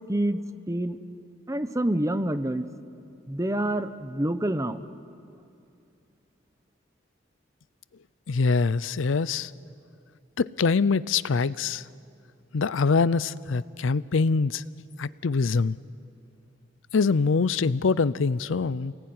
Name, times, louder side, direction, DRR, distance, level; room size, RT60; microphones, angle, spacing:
voice 1, 0.1-0.4 0.7-1.0 1.5-2.7 3.3-4.8, right 1 dB, 15° right, 11 dB, 0.8 m, -27 dB
voice 2, 8.3-9.5 10.4-11.8 12.5-14.6 15.0-15.8 16.9-18.9, left 4 dB, 80° left, 19 dB, 0.5 m, -24 dB
28.5 x 19.0 x 9.6 m, 2.6 s
head